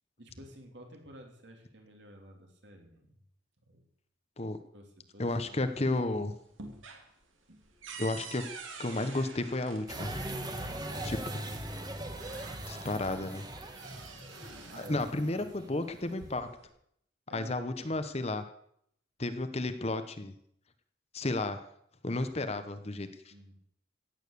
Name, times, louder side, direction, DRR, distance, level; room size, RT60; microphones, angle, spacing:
voice 1, 0.2-3.2 3.7-3.8 4.7-6.2 14.0-15.8 17.3-18.0 23.3-23.5, equal, 60° right, 2 dB, 3.4 m, -52 dB
voice 2, 5.2-6.3 8.0-8.4 8.8-10.1 11.0-11.4 12.7-13.4 14.8-16.5 17.3-18.4 19.2-20.3 21.1-21.6 22.0-23.3, left 2 dB, 30° left, 10 dB, 1.0 m, -32 dB
sound 1, 5.4-6.1 6.4-10.4 11.5-11.6 12.0-12.9 13.3-15.0 15.9-16.7, right 4 dB, 85° right, 2.9 m, -47 dB
sound 2, 9.9-16.0, right 1 dB, 20° right, 1.6 m, -40 dB
16.0 x 9.1 x 6.9 m, 0.70 s
head